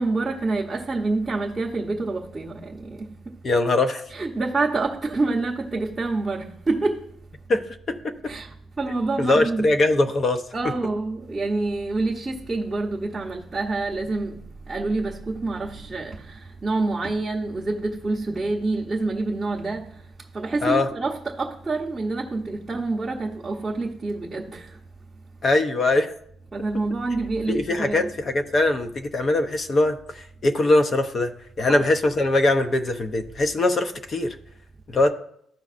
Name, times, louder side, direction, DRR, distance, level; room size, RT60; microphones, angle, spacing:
voice 1, 0.0-3.1 4.1-7.0 8.3-8.5 8.8-9.7 10.5-14.4 14.7-19.9 20.3-24.8 26.5-28.1 31.6-31.9, right 3 dB, 15° right, 0.7 m, -27 dB
voice 2, 3.4-4.0 7.5-7.6 7.9-8.1 9.2-10.5 20.6-20.9 25.4-26.1 27.5-34.4 34.9-35.1, left 2 dB, 30° left, 0.5 m, -22 dB
13.5 x 5.1 x 2.5 m
cardioid pair, 160°, 0 cm